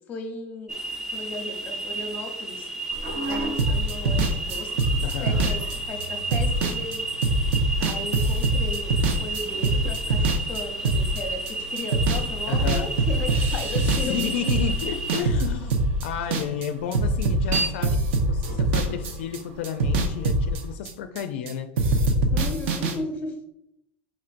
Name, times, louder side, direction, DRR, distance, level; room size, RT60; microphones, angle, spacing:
voice 1, 0.1-0.7 1.1-2.7 3.2-5.6 5.9-7.0 7.8-14.3 22.3-23.3, left 3 dB, 25° left, 4 dB, 0.7 m, -36 dB
sound 1, 0.7-15.2, right 3 dB, 10° right, 0.5 m, -32 dB
sound 2, 2.9-20.7, right 1 dB, 45° right, 0.7 m, -39 dB
sound 3, 3.6-11.5 11.8-12.3 12.5-16.7 16.9-19.4 19.6-21.5 21.8-22.9, right 2 dB, 80° right, 0.7 m, -24 dB
voice 2, 5.0-5.5 10.2-10.3 12.5-12.9 13.7-22.1, left 8 dB, 80° left, 7 dB, 0.4 m, -32 dB
4.4 x 4.2 x 2.5 m, 0.82 s
supercardioid pair, 155°, 6 cm